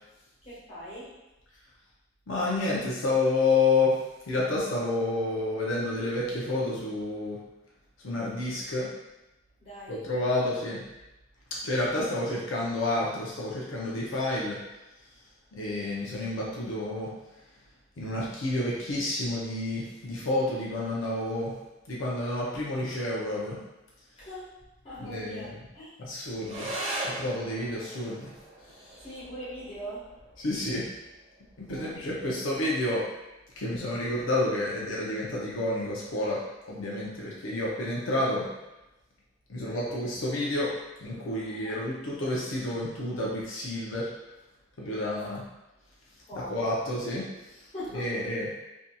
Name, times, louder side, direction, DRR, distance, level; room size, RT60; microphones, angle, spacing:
voice 1, 0.4-1.1 9.6-10.0 24.2-24.5 24.8-25.9 29.0-30.1 31.7-31.9 41.6-41.8 46.3-46.8 47.7-48.2, equal, 30° left, -11 dB, 1.3 m, -41 dB
voice 2, 2.3-3.9 4.3-7.4 8.0-8.9 9.9-10.8 11.5-14.6 15.6-17.1 18.0-21.6 21.9-23.6 25.0-25.6 26.0-26.7 27.0-28.3 28.9-29.0 30.4-30.9 31.6-33.0 33.6-36.4 36.7-38.5 39.5-40.7 41.0-44.1 44.8-45.4 46.5-47.2 47.9-48.5, left 2 dB, 90° left, -5 dB, 0.6 m, -29 dB
sound 1, 26.4-35.4, right 1 dB, 30° right, 0.4 m, -41 dB
2.6 x 2.6 x 2.2 m, 0.98 s
head